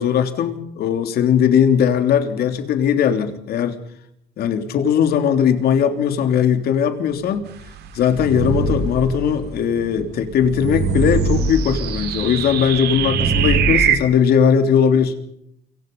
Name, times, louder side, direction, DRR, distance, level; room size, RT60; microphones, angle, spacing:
voice 1, 0.0-3.8 4.4-7.4 7.9-15.1, left 8 dB, 65° left, 8 dB, 3.4 m, -18 dB
sound 1, 7.4-13.9, right 4 dB, 45° right, 6.1 m, -24 dB
sound 2, 10.8-14.0, right 11 dB, 75° right, 2.8 m, -23 dB
28.5 x 24.0 x 5.6 m, 0.73 s
cardioid pair, 110°, 17 cm